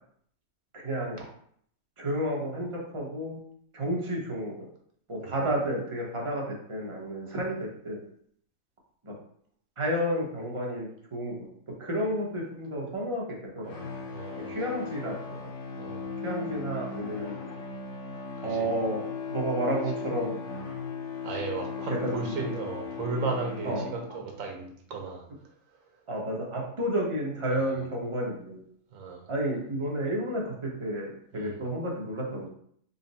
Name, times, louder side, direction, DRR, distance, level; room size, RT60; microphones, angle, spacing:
voice 1, 0.7-1.2 2.0-3.4 3.7-4.7 5.1-8.0 9.0-9.1 9.8-11.5 11.8-13.8 14.4-15.4 16.2-17.3 18.4-19.0 19.3-20.3 21.9-22.3 23.6-23.9 26.1-28.6 29.3-32.5, right 1 dB, 25° right, -2 dB, 0.7 m, -31 dB
sound 1, 13.7-24.4, left 5 dB, 65° left, 0.9 m, -37 dB
voice 2, 14.1-14.6 15.8-16.1 18.4-18.7 21.2-25.2 27.5-27.8 28.9-29.2 31.3-31.6, right 3 dB, 75° right, 1 dB, 1.2 m, -35 dB
4.0 x 2.1 x 4.0 m, 0.64 s
omnidirectional pair, 1.5 m